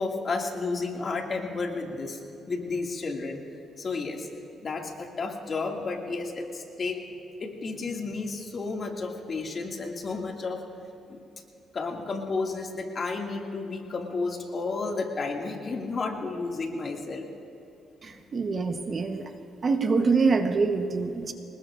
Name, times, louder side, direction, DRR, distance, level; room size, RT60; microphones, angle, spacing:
voice 1, 0.0-2.2 2.5-3.4 3.8-4.3 4.6-7.0 7.4-10.6 11.1-11.2 11.7-17.3 18.1-18.2, left 3 dB, 45° left, 1 dB, 2.2 m, -32 dB
voice 2, 18.0-19.3 19.6-21.3, right 4 dB, 40° right, 6 dB, 1.1 m, -25 dB
25.5 x 20.5 x 2.6 m, 2.7 s
cardioid pair, 90°, 0 cm